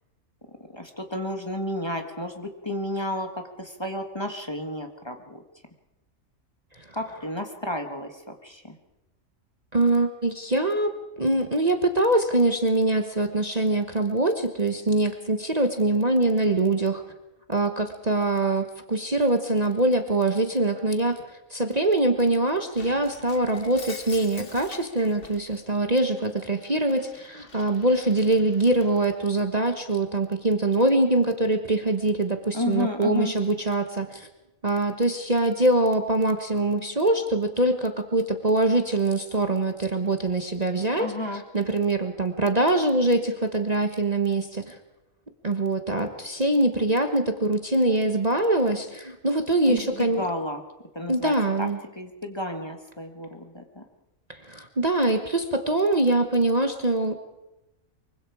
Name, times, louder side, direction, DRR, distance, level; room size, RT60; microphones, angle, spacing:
voice 1, 0.7-5.4 6.9-8.8 32.5-33.3 41.0-41.4 49.7-50.6 50.9-51.3 51.6-51.7 51.9-53.8, left 1 dB, 20° left, 4 dB, 1.6 m, -32 dB
voice 2, 9.7-17.0 17.5-21.2 21.5-34.3 34.6-44.7 45.4-50.2 51.1-51.8 54.3-57.1, right 2 dB, 30° right, 5 dB, 1.3 m, -23 dB
Shatter, 22.7-25.6 26.0-29.2, left 4 dB, 40° left, 1.8 m, -45 dB
24.0 x 24.0 x 4.9 m, 0.99 s
omnidirectional pair, 1.4 m